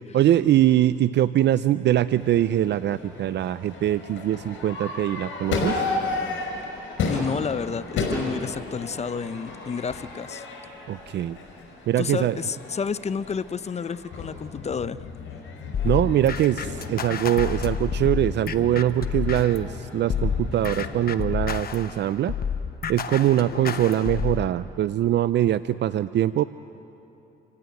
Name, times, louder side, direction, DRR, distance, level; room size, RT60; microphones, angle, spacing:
voice 1, 0.1-5.8 10.9-11.4 11.9-12.4 15.8-22.3 22.9-26.4, right 12 dB, 60° right, 15 dB, 0.5 m, -22 dB
Crowd / Fireworks, 2.1-21.1, left 3 dB, 75° left, 5.2 m, -34 dB
voice 2, 7.1-10.5 12.0-15.0, left 6 dB, 35° left, 15 dB, 0.6 m, -30 dB
sound 1, 15.7-19.7 20.1-24.5, left 6 dB, 50° left, 1.0 m, -29 dB
27.5 x 15.5 x 9.2 m, 2.9 s
cardioid pair, 90°, 20 cm